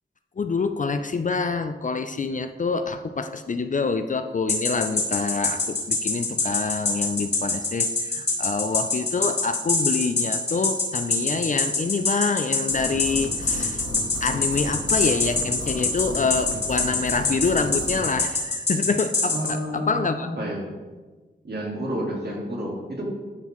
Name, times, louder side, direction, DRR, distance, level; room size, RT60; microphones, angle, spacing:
voice 1, 0.4-13.9 14.2-20.3, left 4 dB, 40° left, 9 dB, 0.4 m, -26 dB
sound 1, 4.5-19.5, left 4 dB, 60° left, 1.9 m, -23 dB
sound 2, 12.7-18.1, left 2 dB, 75° left, 1.0 m, -35 dB
voice 2, 19.3-20.7 21.4-23.0, equal, 55° right, -2 dB, 1.9 m, -30 dB
11.0 x 3.8 x 3.1 m, 1.3 s
cardioid pair, 45°, 20 cm